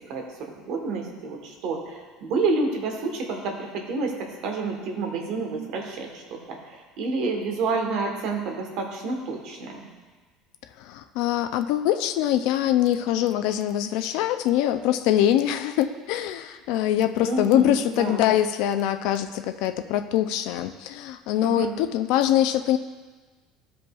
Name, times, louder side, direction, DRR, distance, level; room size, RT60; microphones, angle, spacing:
voice 1, 0.1-9.9 17.2-18.3 21.4-21.7, right 3 dB, 50° right, 2 dB, 1.2 m, -29 dB
voice 2, 10.8-22.8, left 11 dB, 60° left, 8 dB, 0.3 m, -23 dB
14.0 x 5.1 x 2.3 m, 1.3 s
cardioid pair, 175°, 0 cm